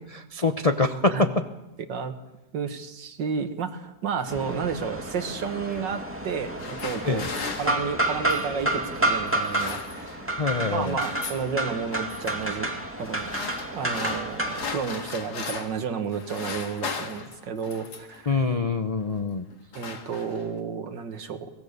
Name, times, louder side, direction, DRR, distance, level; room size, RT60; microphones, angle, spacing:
voice 1, 0.3-1.3 7.1-7.3 10.4-11.0 18.3-19.5, left 3 dB, 45° left, 6 dB, 0.4 m, -24 dB
voice 2, 2.5-7.2 7.6-10.4 10.7-12.7 13.0-13.3 13.7-18.4 19.7-21.5, right 6 dB, 75° right, 8 dB, 2.2 m, -31 dB
sound 1, 4.3-14.7, right 1 dB, 5° right, 2.2 m, -30 dB
sound 2, 6.4-8.6 9.3-10.3 10.6-11.5 11.9-12.3 13.0-15.8 16.1-18.2 19.0-19.2 19.5-20.6, left 5 dB, 60° left, 2.2 m, -37 dB
23.5 x 18.5 x 6.8 m, 1.0 s
omnidirectional pair, 2.0 m